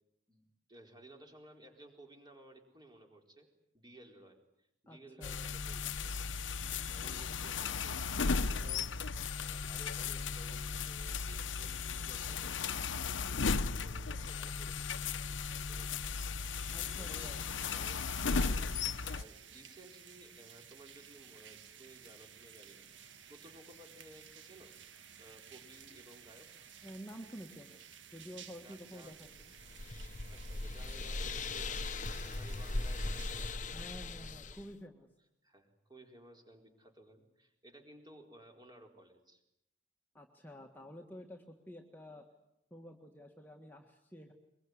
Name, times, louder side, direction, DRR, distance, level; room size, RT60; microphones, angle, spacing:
voice 1, 0.3-3.5 3.7-6.2 6.6-15.0 15.4-16.0 16.8-17.3 17.7-24.8 25.2-26.8 28.6-29.2 30.3-34.6 35.4-39.4, right 1 dB, 25° right, 3 dB, 4.3 m, -58 dB
voice 2, 4.9-5.5 16.7-17.4 26.8-27.8 28.1-29.3 33.7-35.1 40.1-42.2 42.7-44.3, equal, 10° left, 2 dB, 1.7 m, -50 dB
sound 1, 5.2-19.2, left 5 dB, 80° left, 0.9 m, -36 dB
sound 2, 16.4-33.5, right 8 dB, 75° right, 1.6 m, -55 dB
sound 3, 29.3-34.7, left 2 dB, 40° left, 1.0 m, -39 dB
23.5 x 22.5 x 9.6 m, 0.82 s
head